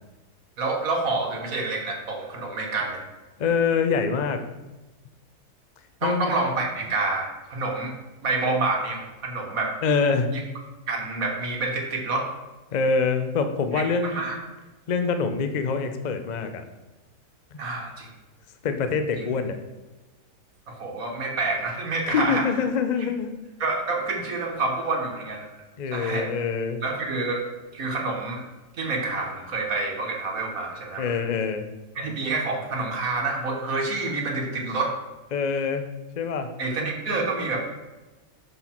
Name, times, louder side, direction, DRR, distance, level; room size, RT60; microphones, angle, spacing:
voice 1, 0.6-3.0 6.0-7.9 8.2-9.8 10.3-10.4 10.9-12.3 13.7-14.4 17.6-18.1 19.2-19.3 20.7-22.5 23.6-25.5 25.9-26.3 26.8-27.4 27.7-28.4 28.8-31.2 31.9-35.0 36.6-37.7, right 3 dB, 60° right, 1 dB, 1.6 m, -28 dB
voice 2, 3.4-4.4 6.0-6.3 8.4-8.6 9.8-10.3 12.7-14.3 14.9-16.6 17.5-17.6 18.6-19.6 22.1-23.3 25.8-26.8 31.0-31.7 35.3-35.8 36.2-36.5, left 5 dB, 85° left, 7 dB, 0.3 m, -25 dB
6.6 x 5.9 x 4.4 m, 1.1 s
omnidirectional pair, 1.7 m